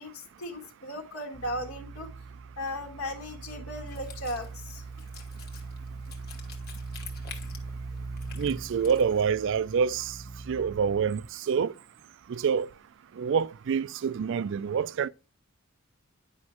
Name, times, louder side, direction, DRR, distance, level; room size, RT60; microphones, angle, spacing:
voice 1, 0.0-2.1 2.6-4.9, left 1 dB, 80° left, 1.6 m, -37 dB
sound 1, 1.3-11.3, right 3 dB, 30° right, 0.7 m, -41 dB
Wind instrument woodwind instrument, 3.9-9.3, left 7 dB, 45° left, 1.3 m, -49 dB
voice 2, 8.4-10.1 10.5-11.2 11.5-11.7 12.3-12.7 13.2-15.1, right 6 dB, 55° right, 0.3 m, -26 dB
9.6 x 5.3 x 2.9 m
head